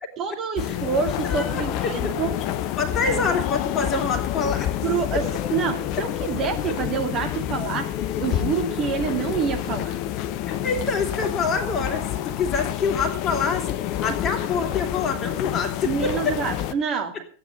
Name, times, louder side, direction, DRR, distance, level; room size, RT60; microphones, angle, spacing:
voice 1, 0.2-2.3 3.0-3.2 4.8-7.9 8.2-10.0 15.8-17.1, right 6 dB, 30° right, 4 dB, 2.4 m, -27 dB
sound 1, 0.6-16.7, left 12 dB, 40° left, 0.8 m, -28 dB
voice 2, 1.2-2.0 2.8-4.8 6.7-6.8 10.5-13.7 14.0-16.1, left 4 dB, 25° left, 5 dB, 2.9 m, -26 dB
15.0 x 9.5 x 6.6 m, 0.41 s
figure-of-eight pair, 90°, 0 cm